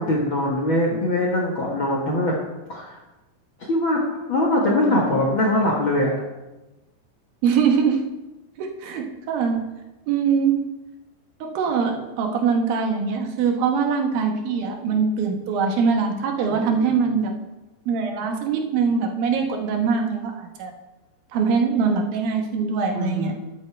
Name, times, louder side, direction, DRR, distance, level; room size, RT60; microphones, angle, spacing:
voice 1, 0.0-2.3 2.7-3.0 3.7-4.0 4.3-6.1 16.5-17.1 22.9-23.3, left 1 dB, 70° left, -2 dB, 1.2 m, -22 dB
voice 2, 7.4-8.0 8.6-9.6 10.1-10.6 11.4-17.4 17.9-20.7 21.3-23.3, right 5 dB, 70° right, 3 dB, 2.8 m, -22 dB
13.0 x 11.0 x 3.3 m, 1.0 s
omnidirectional pair, 4.7 m